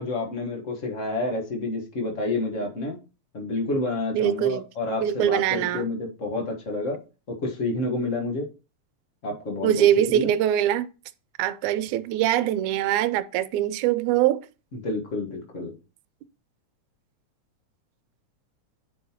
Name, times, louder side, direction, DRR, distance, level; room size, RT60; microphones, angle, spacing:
voice 1, 0.0-3.0 3.3-7.0 7.4-8.5 9.2-9.8 10.1-10.3 14.7-15.7, left 2 dB, 40° left, 1.1 m, -29 dB
voice 2, 4.1-4.6 5.0-5.9 9.6-10.9 11.4-14.4, right 11 dB, 85° right, 2.0 m, -23 dB
9.4 x 5.4 x 2.9 m
omnidirectional pair, 3.4 m